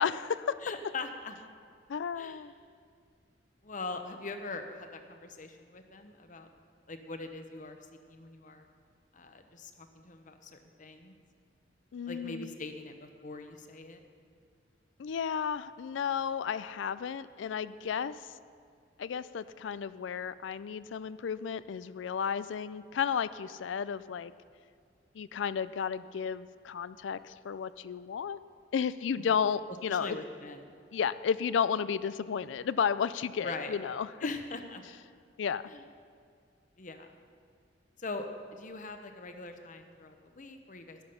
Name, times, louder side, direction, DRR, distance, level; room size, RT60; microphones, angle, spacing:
voice 1, 0.0-0.6 1.9-2.5 11.9-12.5 15.0-18.2 19.0-24.3 25.1-28.4 28.7-30.2 30.9-34.1 35.4-35.6, left 7 dB, 85° left, 15 dB, 0.4 m, -33 dB
voice 2, 0.6-1.4 2.1-2.4 3.6-6.5 6.9-7.8 8.1-8.7 9.1-11.1 12.1-14.0 29.1-29.3 29.9-30.7 33.4-33.8 34.2-34.8 35.7-35.8 36.8-37.1 38.0-38.3 38.5-41.0, left 3 dB, 45° left, 7 dB, 0.9 m, -42 dB
13.0 x 10.0 x 5.7 m, 2.2 s
head